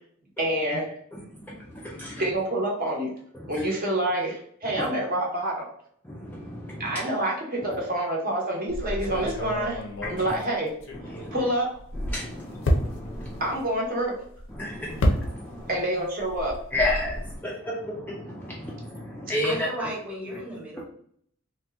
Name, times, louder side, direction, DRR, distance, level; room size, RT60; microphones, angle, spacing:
voice 1, 0.4-0.9 2.2-3.1 3.5-5.7 6.8-9.8 10.1-10.7 11.3-11.7 13.4-14.2 15.7-16.5, right 1 dB, 40° right, -2 dB, 0.9 m, -27 dB
voice 2, 1.1-2.2 3.3-3.7 4.6-4.9 6.0-7.0 7.7-7.8 10.0-10.3 10.9-11.5 11.9-13.6 14.5-15.6 16.7-19.7 20.8-20.9, left 1 dB, 10° left, -4 dB, 0.4 m, -32 dB
sound 1, 8.7-11.4 11.7-15.8 16.1-17.4, left 1 dB, 60° left, 0.5 m, -30 dB
voice 3, 19.4-20.8, right 1 dB, 5° right, -5 dB, 0.9 m, -35 dB
2.8 x 2.2 x 3.3 m, 0.63 s
head